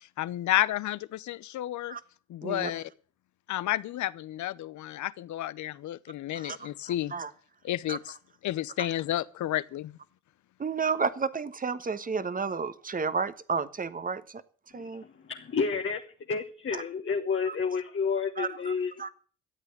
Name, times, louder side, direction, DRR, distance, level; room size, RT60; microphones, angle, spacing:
voice 1, 0.2-2.0 2.3-2.9 3.5-7.1 7.6-8.1 8.4-9.9, left 13 dB, 75° left, 0.8 m, -31 dB
voice 2, 6.3-7.3 7.9-8.0 10.6-14.4 14.7-15.0 17.5-17.6 18.4-18.7 19.0-19.1, right 5 dB, 30° right, 1.2 m, -32 dB
voice 3, 14.7-16.0 16.3-19.0, left 5 dB, 40° left, 1.4 m, -30 dB
13.5 x 8.4 x 8.4 m
cardioid pair, 90°, 30 cm